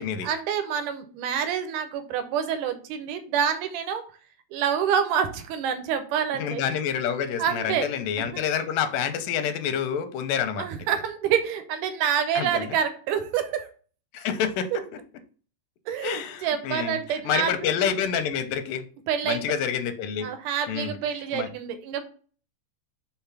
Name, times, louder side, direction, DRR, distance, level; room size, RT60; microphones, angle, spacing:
voice 1, 0.2-4.0 4.5-6.6 7.4-7.9 8.2-8.4 10.6-13.7 15.9-17.7 19.1-19.4 20.2-22.1, right 8 dB, 75° right, 8 dB, 2.3 m, -27 dB
voice 2, 6.3-10.6 12.4-12.8 14.1-14.8 16.0-18.8 19.3-20.3 20.7-21.0 21.3-21.5, left 8 dB, 85° left, 9 dB, 2.4 m, -28 dB
5.7 x 3.6 x 5.8 m, 0.40 s
omnidirectional pair, 3.8 m